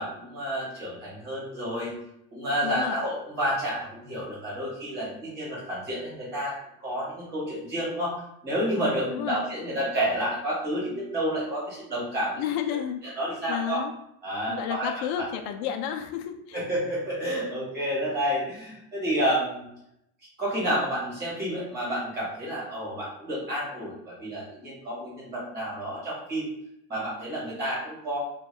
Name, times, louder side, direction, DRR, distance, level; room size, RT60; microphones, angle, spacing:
voice 1, 0.0-1.9 2.3-6.5 6.8-8.1 8.4-12.4 13.0-13.8 14.2-14.9 15.2-15.3 16.5-19.6 20.4-26.5 26.9-28.2, equal, 30° right, -6 dB, 1.5 m, -30 dB
voice 2, 2.6-3.0 9.1-9.4 12.4-13.0 13.5-13.9 14.5-16.6, left 9 dB, 75° left, 5 dB, 0.5 m, -31 dB
2.7 x 2.2 x 3.2 m, 0.78 s
cardioid pair, 175°, 34 cm